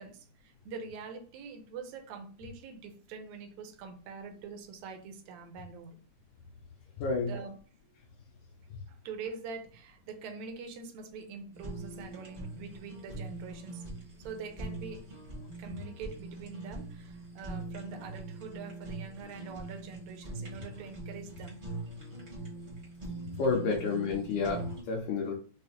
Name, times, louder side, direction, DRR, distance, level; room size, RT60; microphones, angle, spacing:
voice 1, 0.0-6.0 7.2-7.6 8.9-13.9 14.2-15.1 15.6-21.6 25.3-25.4, right 5 dB, 80° right, 1.8 m, -44 dB
voice 2, 7.0-7.3 23.4-25.3, left 4 dB, 85° left, 2.2 m, -30 dB
Fire, 11.5-24.8, right 2 dB, 55° right, 0.5 m, -43 dB
5.6 x 2.0 x 2.8 m
omnidirectional pair, 3.4 m